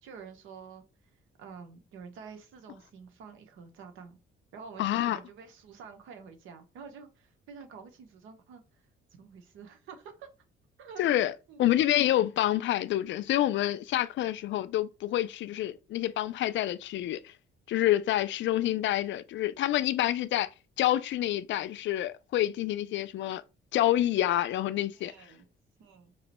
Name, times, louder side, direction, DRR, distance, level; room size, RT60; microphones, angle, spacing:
voice 1, 0.0-0.8 1.4-4.2 4.5-8.8 9.2-10.3 10.8-11.0 11.5-11.7 24.9-25.5 25.8-26.1, right 6 dB, 85° right, 1.0 m, -48 dB
voice 2, 4.8-5.2 11.0-11.3 11.6-17.3 17.7-20.5 20.8-23.4 23.7-25.1, left 13 dB, 70° left, 0.4 m, -27 dB
4.6 x 3.0 x 2.9 m
cardioid pair, 90°, 20 cm